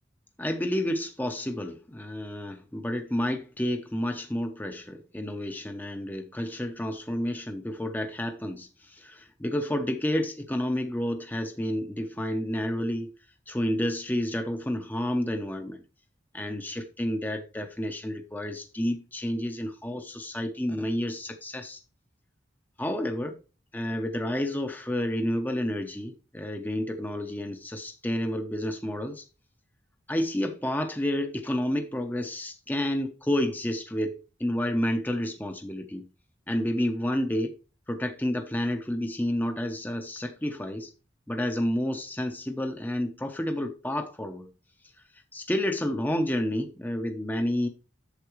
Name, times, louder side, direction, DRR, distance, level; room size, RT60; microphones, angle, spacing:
voice 1, 0.4-13.1 13.5-15.8 16.3-21.8 22.8-23.4 23.7-29.3 30.1-36.0 36.5-37.5 37.9-40.9 41.3-44.5 45.3-47.7, left 1 dB, 10° left, 0.6 m, -30 dB
8.2 x 7.1 x 3.0 m
head